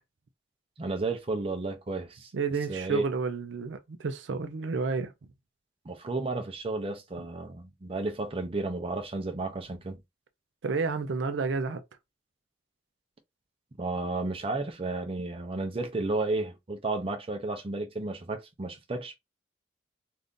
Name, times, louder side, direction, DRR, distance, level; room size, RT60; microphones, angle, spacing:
voice 1, 0.8-2.3 2.7-3.0 5.9-10.0 13.8-19.2, right 2 dB, 30° right, 0.6 m, -32 dB
voice 2, 2.3-5.1 10.6-11.8, right 4 dB, 80° right, 0.5 m, -30 dB
2.6 x 2.5 x 3.6 m
head